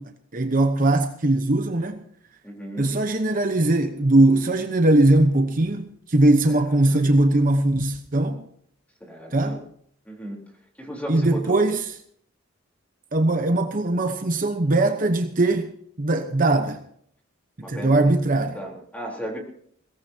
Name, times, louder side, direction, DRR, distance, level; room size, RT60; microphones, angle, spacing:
voice 1, 0.0-2.0 2.8-8.4 9.3-9.6 11.1-11.8 13.1-15.7 16.0-16.8 17.6-18.6, right 2 dB, 45° right, 1.0 m, -20 dB
voice 2, 2.4-3.0 6.5-7.0 9.0-9.6 10.1-10.4 10.8-11.7 17.6-18.1 18.5-19.4, equal, 5° left, 3.8 m, -35 dB
22.0 x 17.5 x 2.9 m
head